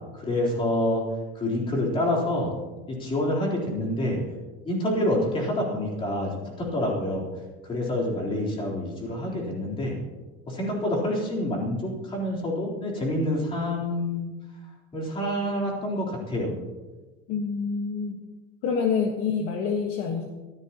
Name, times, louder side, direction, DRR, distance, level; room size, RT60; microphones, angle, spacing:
voice 1, 0.2-1.0 1.4-2.5 2.9-4.2 4.6-7.2 7.7-10.0 10.5-14.3 14.9-16.5, left 1 dB, 15° left, -3 dB, 3.7 m, -27 dB
voice 2, 17.3-18.2 18.6-20.3, left 5 dB, 45° left, 2 dB, 1.5 m, -27 dB
22.5 x 15.0 x 2.9 m, 1.2 s
cardioid pair, 180°, 31 cm